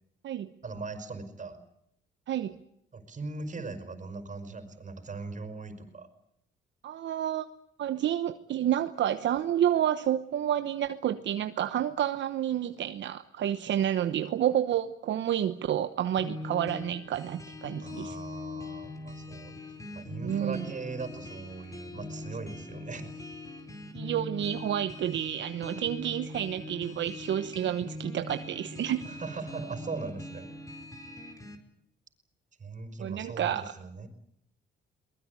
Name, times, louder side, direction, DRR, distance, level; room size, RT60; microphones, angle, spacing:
voice 1, 0.6-1.6 2.9-6.1 17.8-19.6 19.9-23.2 29.0-30.6 32.6-34.1, right 3 dB, 40° right, 9 dB, 5.3 m, -40 dB
voice 2, 6.8-7.5 7.8-18.2 20.2-20.6 23.9-29.0 33.0-33.7, right 10 dB, 65° right, 10 dB, 1.1 m, -29 dB
sound 1, 16.2-31.6, left 2 dB, 15° left, 4.5 m, -42 dB
23.0 x 20.5 x 9.7 m, 0.73 s
cardioid pair, 90°, 20 cm